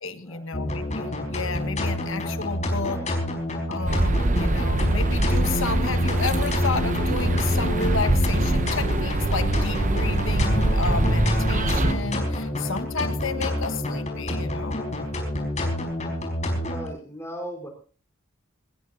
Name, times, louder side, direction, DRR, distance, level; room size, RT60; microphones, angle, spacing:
voice 1, 0.0-3.0 3.7-14.8, left 4 dB, 65° left, 10 dB, 1.6 m, -32 dB
sound 1, 0.5-16.9, left 1 dB, 35° left, 4.8 m, -27 dB
voice 2, 2.7-3.1 16.6-17.7, equal, 10° left, 4 dB, 4.3 m, -38 dB
sound 2, 3.9-11.9, right 1 dB, 35° right, 0.9 m, -24 dB
21.5 x 20.0 x 2.8 m, 0.38 s
head